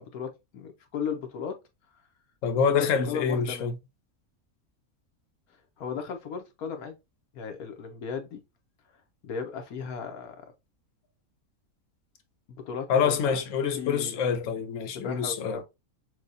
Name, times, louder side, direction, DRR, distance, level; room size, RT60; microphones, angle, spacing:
voice 1, 0.0-1.6 1.9-2.0 2.6-3.7 5.5-7.0 7.3-8.4 9.2-10.4 12.6-13.4 13.8-14.2 14.9-15.6, left 6 dB, 80° left, 1.4 m, -36 dB
voice 2, 2.4-3.7 12.9-15.6, left 6 dB, 65° left, 1.1 m, -26 dB
6.3 x 2.3 x 2.7 m
omnidirectional pair, 1.6 m